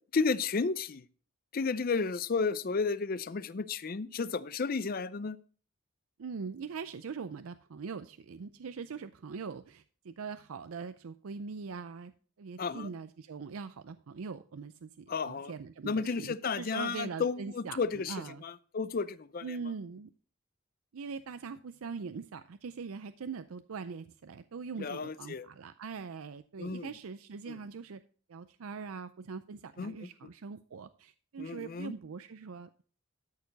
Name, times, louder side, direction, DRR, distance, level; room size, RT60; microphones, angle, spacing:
voice 1, 0.1-1.0 1.5-5.4 12.6-12.9 15.1-15.5 15.8-18.2 18.4-19.5 24.8-25.5 26.6-26.9 27.5-27.6 29.8-30.1 31.4-31.9, left 4 dB, 45° left, 16 dB, 0.5 m, -32 dB
voice 2, 6.2-12.1 12.4-18.4 19.4-20.1 20.9-28.0 28.3-32.8, right 5 dB, 80° right, 11 dB, 0.5 m, -42 dB
13.0 x 6.8 x 4.0 m, 0.42 s
head